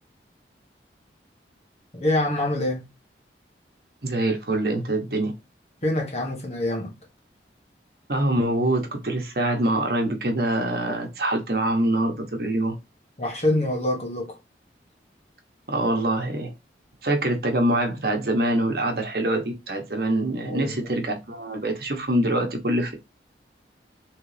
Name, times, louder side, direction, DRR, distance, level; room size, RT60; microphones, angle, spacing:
voice 1, 1.9-2.8 5.8-6.9 13.2-14.4 20.4-20.9, left 1 dB, 35° left, 1.3 m, -25 dB
voice 2, 4.0-5.3 8.1-12.7 15.7-16.5 17.0-22.9, right 1 dB, 60° right, 1.1 m, -24 dB
3.9 x 3.3 x 3.3 m
head